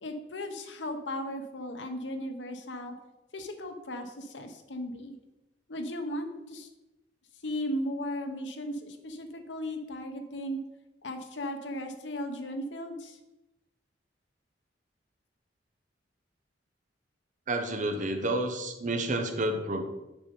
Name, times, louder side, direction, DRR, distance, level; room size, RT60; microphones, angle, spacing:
voice 1, 0.0-2.9 3.3-5.2 5.7-6.7 7.4-10.6 11.0-13.2, left 1 dB, 85° left, 5 dB, 1.0 m, -36 dB
voice 2, 17.5-19.8, right 1 dB, 45° right, 5 dB, 0.9 m, -30 dB
6.9 x 5.3 x 5.4 m, 0.96 s
head